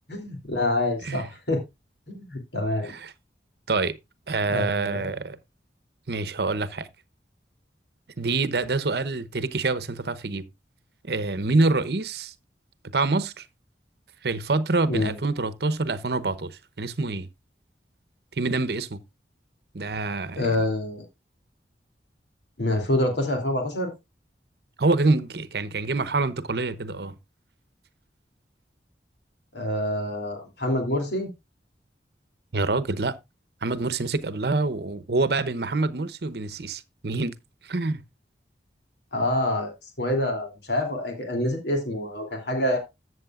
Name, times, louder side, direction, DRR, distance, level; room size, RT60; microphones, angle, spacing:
voice 1, 0.1-1.6 2.1-2.9 4.5-5.1 14.9-15.2 20.4-21.0 22.6-23.9 29.5-31.3 39.1-42.8, left 1 dB, 75° left, 2.9 m, -26 dB
voice 2, 4.3-5.4 6.1-6.9 8.2-10.4 11.0-12.3 12.9-13.4 14.2-17.3 18.4-19.0 19.7-20.5 24.8-27.1 32.5-33.1 33.6-37.3 37.6-38.0, right 3 dB, 65° right, 0.9 m, -26 dB
13.5 x 7.7 x 2.4 m
head